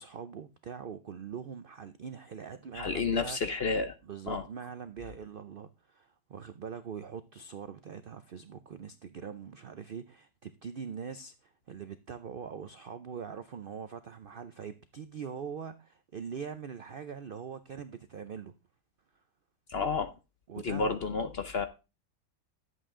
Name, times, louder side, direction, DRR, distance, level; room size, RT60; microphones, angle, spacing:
voice 1, 0.0-3.4 4.1-18.5 20.5-21.0, right 7 dB, 80° right, 0.5 m, -42 dB
voice 2, 2.7-4.0 4.3-4.4 19.7-20.1 20.6-21.7, left 4 dB, 55° left, 0.7 m, -30 dB
11.0 x 8.1 x 3.7 m
omnidirectional pair, 1.8 m